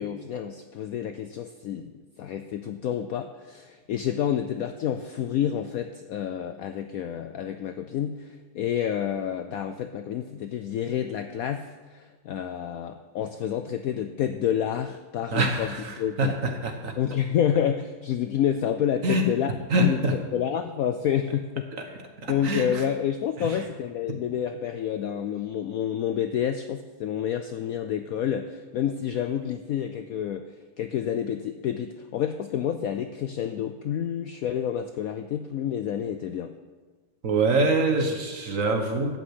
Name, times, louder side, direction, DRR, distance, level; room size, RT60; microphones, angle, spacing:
voice 1, 0.0-1.9 2.2-16.4 17.0-19.5 19.8-22.0 22.3-30.4 30.8-36.5, left 9 dB, 75° left, 9 dB, 0.8 m, -29 dB
voice 2, 15.3-16.9 19.0-19.2 19.7-20.2 22.2-22.8 23.4-23.5 24.1-24.2 37.2-39.2, right 2 dB, 50° right, 4 dB, 1.5 m, -25 dB
12.5 x 6.2 x 8.0 m, 1.4 s
omnidirectional pair, 2.0 m